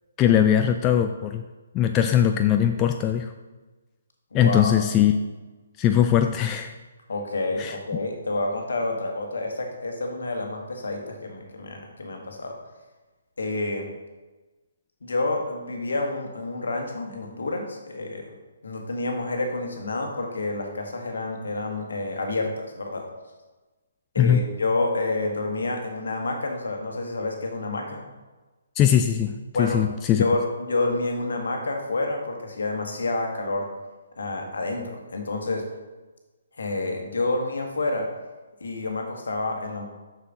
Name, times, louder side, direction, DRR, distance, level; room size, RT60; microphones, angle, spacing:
voice 1, 0.2-1.4 1.7-3.3 4.3-5.2 5.8-6.7 7.6-7.7 24.2-24.4 28.8-29.3 29.6-30.2, left 10 dB, 20° left, 6 dB, 0.3 m, -20 dB
voice 2, 4.3-4.7 7.1-12.6 13.4-13.9 15.0-18.3 18.6-23.0 24.1-28.0 29.5-29.8 30.2-33.7 34.2-35.6 36.6-38.1 38.6-39.8, left 2 dB, 65° left, 2 dB, 1.5 m, -28 dB
6.8 x 6.5 x 3.9 m, 1.2 s
figure-of-eight pair, 135°, 0 cm